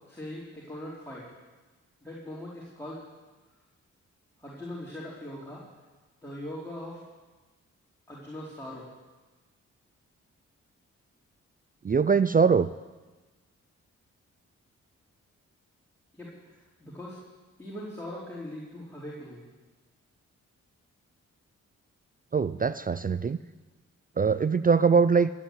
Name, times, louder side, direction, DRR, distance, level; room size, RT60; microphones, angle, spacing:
voice 1, 0.1-1.3 2.0-3.0 4.4-5.6 6.2-7.0 8.1-8.8 16.1-16.3 16.8-17.2 17.6-19.5, left 1 dB, 5° left, -7 dB, 4.4 m, -40 dB
voice 2, 11.8-12.7 22.3-23.4 24.2-25.3, right 5 dB, 25° right, 15 dB, 0.4 m, -22 dB
15.0 x 8.9 x 8.5 m, 1.3 s
supercardioid pair, 45°, 32 cm